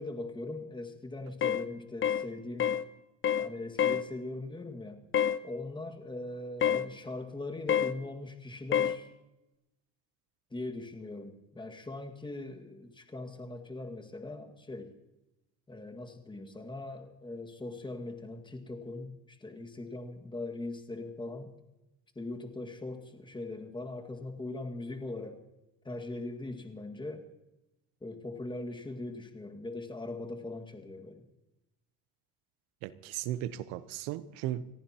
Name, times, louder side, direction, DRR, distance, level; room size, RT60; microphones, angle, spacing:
voice 1, 0.0-2.8 3.4-5.0 5.4-9.1 10.5-14.9 15.7-21.5 22.2-25.4 25.8-27.3 28.0-31.3, left 2 dB, 10° left, 4 dB, 1.9 m, -40 dB
sound 1, 1.4-1.6 2.0-2.3 2.6-2.8 3.2-3.5 3.8-4.0 5.1-5.4 6.6-6.9 7.7-7.9 8.7-9.0, left 9 dB, 30° left, 0.7 m, -27 dB
voice 2, 32.8-34.6, right 13 dB, 90° right, 15 dB, 0.9 m, -36 dB
29.5 x 14.5 x 2.9 m, 0.97 s
cardioid pair, 120°, 39 cm